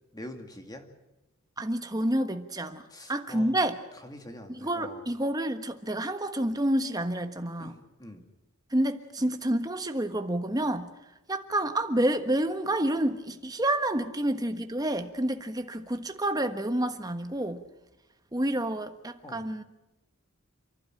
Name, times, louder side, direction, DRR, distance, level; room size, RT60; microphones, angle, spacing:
voice 1, 0.1-0.8 2.9-3.6 4.0-5.0 7.6-8.2 19.2-19.5, left 1 dB, 20° left, 5 dB, 2.3 m, -44 dB
voice 2, 1.6-3.8 4.5-7.7 8.7-10.9 11.3-17.6 18.3-19.6, right 1 dB, 15° right, 8 dB, 1.4 m, -29 dB
29.0 x 12.0 x 9.9 m, 1.0 s
head